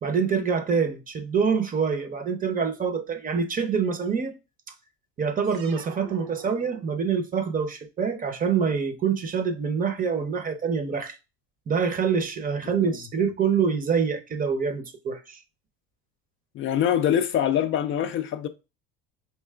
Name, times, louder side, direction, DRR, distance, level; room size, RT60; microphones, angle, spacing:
voice 1, 0.0-4.3 5.2-11.2 11.7-15.4, right 6 dB, 25° right, 0.7 m, -26 dB
sound 1, 5.4-7.3, right 6 dB, 60° right, 0.8 m, -45 dB
voice 2, 16.5-18.5, left 10 dB, 40° left, 0.4 m, -24 dB
4.5 x 2.9 x 2.3 m
hypercardioid pair, 85°, 31 cm